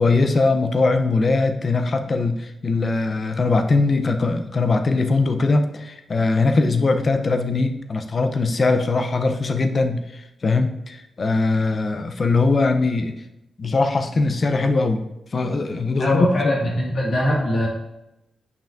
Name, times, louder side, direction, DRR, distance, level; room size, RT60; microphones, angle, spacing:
voice 1, 0.0-13.2 13.6-15.0 15.3-16.3, left 3 dB, 45° left, 7 dB, 0.6 m, -21 dB
voice 2, 16.0-17.7, left 1 dB, 65° left, -3 dB, 1.9 m, -21 dB
9.1 x 5.6 x 2.6 m, 0.92 s
cardioid pair, 85°, 0 cm